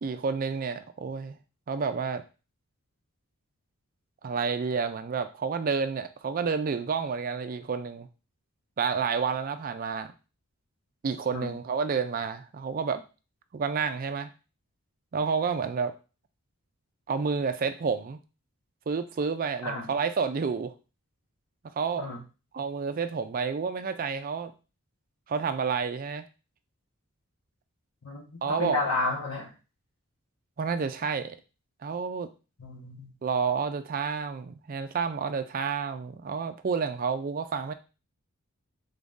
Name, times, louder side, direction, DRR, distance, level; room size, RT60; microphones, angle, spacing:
voice 1, 0.0-1.4 1.7-2.2 4.2-8.1 8.8-10.1 11.0-13.0 13.5-14.3 15.1-15.9 17.1-18.2 18.9-20.7 21.8-22.1 22.5-24.5 25.3-26.2 28.4-28.8 30.6-31.4 31.8-32.3 33.2-37.7, right 5 dB, 40° right, 10 dB, 0.4 m, -29 dB
voice 2, 28.0-29.5 32.6-33.1, left 3 dB, 85° left, -3 dB, 1.2 m, -31 dB
3.9 x 2.6 x 3.5 m, 0.32 s
head